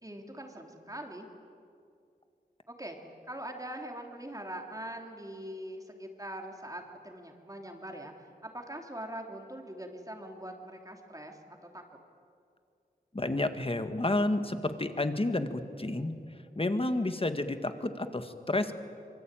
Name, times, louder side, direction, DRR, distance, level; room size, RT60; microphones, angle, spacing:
voice 1, 0.0-1.3 2.7-3.0 3.3-11.4 11.7-11.8, right 1 dB, 20° right, 2 dB, 3.2 m, -42 dB
voice 2, 13.1-16.1 16.6-18.7, left 2 dB, 35° left, 8 dB, 1.8 m, -30 dB
25.5 x 24.0 x 9.1 m, 2.4 s
wide cardioid pair, 70°, 17 cm